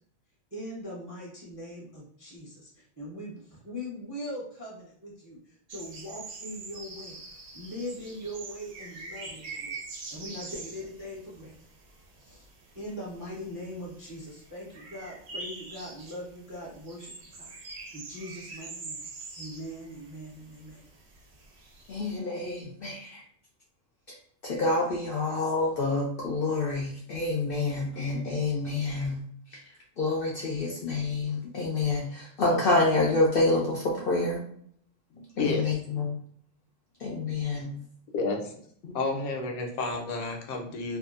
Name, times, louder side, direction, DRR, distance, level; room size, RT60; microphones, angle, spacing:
voice 1, 0.5-2.7 3.0-5.4 5.7-7.2 7.5-9.8 10.1-11.6 12.3-12.5 12.7-17.5 17.9-19.0 19.4-20.9, equal, 25° right, -6 dB, 0.4 m, -41 dB
sound 1, 5.7-22.1, right 3 dB, 60° right, 0.8 m, -45 dB
voice 2, 21.9-23.2 24.4-29.2 30.0-34.4 35.4-36.2 37.0-37.8 38.8-38.9, left 2 dB, 70° left, -2 dB, 0.5 m, -27 dB
voice 3, 35.1-35.7 38.1-38.5 38.9-41.0, left 3 dB, 90° left, 3 dB, 1.1 m, -31 dB
2.6 x 2.3 x 2.4 m, 0.62 s
omnidirectional pair, 1.4 m